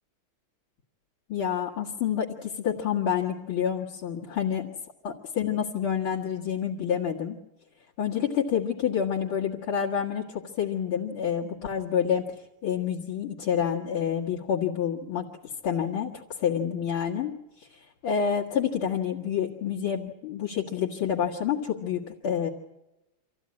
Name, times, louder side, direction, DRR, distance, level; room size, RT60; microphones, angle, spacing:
voice 1, 1.3-4.6 5.0-7.4 8.0-12.2 12.6-17.3 17.6-22.5, left 8 dB, 70° left, -5 dB, 2.6 m, -28 dB
25.5 x 15.5 x 9.7 m, 0.97 s
omnidirectional pair, 2.4 m